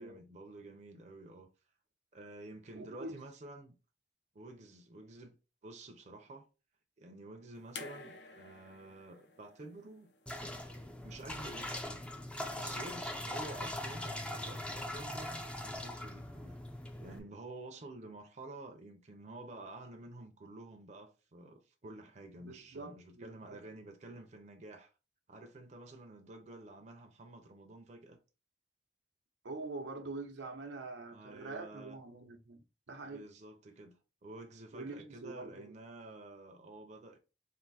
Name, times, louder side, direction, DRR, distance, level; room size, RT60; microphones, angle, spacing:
voice 1, 0.0-1.5 2.1-3.7 4.3-5.4 5.6-6.5 7.0-10.1 10.6-12.1 12.5-16.6 17.0-24.9 25.3-28.2 31.1-32.0 33.0-37.2, right 2 dB, 40° right, 0.6 m, -50 dB
voice 2, 2.8-3.2 22.4-23.6 29.4-33.3 34.7-35.7, right 3 dB, 85° right, 0.8 m, -45 dB
sound 1, 7.7-10.9 12.1-12.2, left 4 dB, 65° left, 0.7 m, -51 dB
sound 2, 10.3-17.2, left 1 dB, 5° left, 0.4 m, -41 dB
3.6 x 2.6 x 4.1 m
head